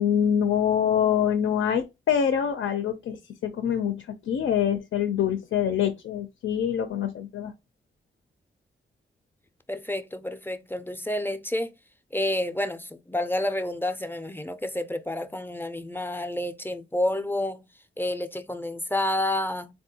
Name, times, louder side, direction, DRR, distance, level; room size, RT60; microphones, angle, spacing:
voice 1, 0.0-7.5, left 8 dB, 85° left, 0.5 m, -25 dB
voice 2, 9.7-11.7 12.1-17.6 18.0-19.7, left 1 dB, 10° left, 0.4 m, -29 dB
3.5 x 2.2 x 2.7 m
cardioid pair, 60°, 20 cm